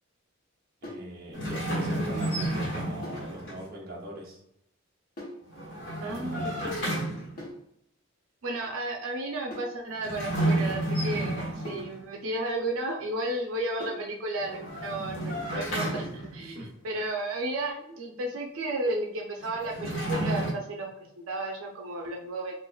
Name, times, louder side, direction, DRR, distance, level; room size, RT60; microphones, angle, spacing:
sound 1, 0.8-1.1 3.0-3.3 5.2-5.5 7.4-7.7 9.5-9.8 11.6-12.0 13.8-14.1 15.9-16.2, left 1 dB, 45° left, 1.0 m, -41 dB
voice 1, 0.8-4.4 6.0-6.9 11.3-11.4 16.5-16.7, equal, 50° right, -2 dB, 0.9 m, -41 dB
sound 2, 1.3-3.6 5.5-7.5 9.9-12.0 14.4-16.5 19.4-20.5, right 1 dB, 65° left, 1.3 m, -31 dB
voice 2, 6.0-6.7 8.4-16.6 16.8-20.9 21.2-22.5, right 2 dB, 90° right, 0 dB, 0.5 m, -33 dB
4.5 x 2.4 x 2.3 m, 0.77 s
head